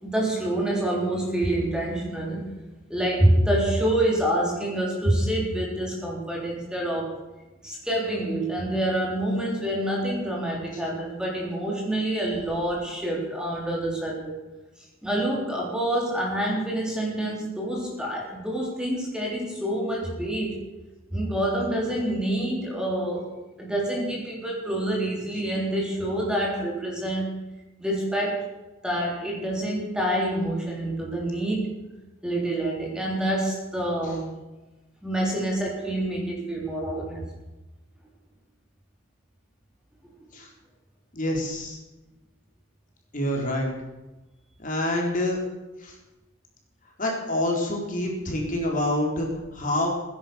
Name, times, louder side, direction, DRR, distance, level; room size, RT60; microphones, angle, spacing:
voice 1, 0.0-2.4 2.9-7.1 7.6-14.3 15.0-20.6 21.1-23.3 23.6-27.4 27.8-28.5 28.8-31.7 32.2-34.2 35.0-37.2, right 1 dB, 5° right, -2 dB, 3.7 m, -27 dB
voice 2, 41.1-41.8 43.1-43.7 44.6-45.4 45.8-46.0 47.0-49.9, left 1 dB, 40° left, 0 dB, 4.0 m, -27 dB
19.0 x 10.5 x 7.0 m, 1.1 s
head